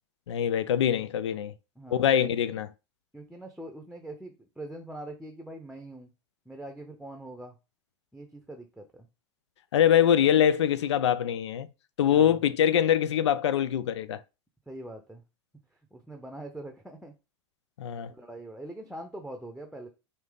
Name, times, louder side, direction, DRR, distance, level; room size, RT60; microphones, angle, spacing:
voice 1, 0.3-1.5 1.9-2.7 9.7-11.7 12.0-14.2 17.8-18.1, left 9 dB, 75° left, 0.4 m, -23 dB
voice 2, 1.8-2.3 3.1-6.1 6.5-7.6 8.1-9.1 12.1-12.4 14.7-15.2 15.9-17.1 18.1-19.9, right 1 dB, ahead, 0.7 m, -43 dB
5.0 x 2.7 x 3.7 m
hypercardioid pair, 90°, 15 cm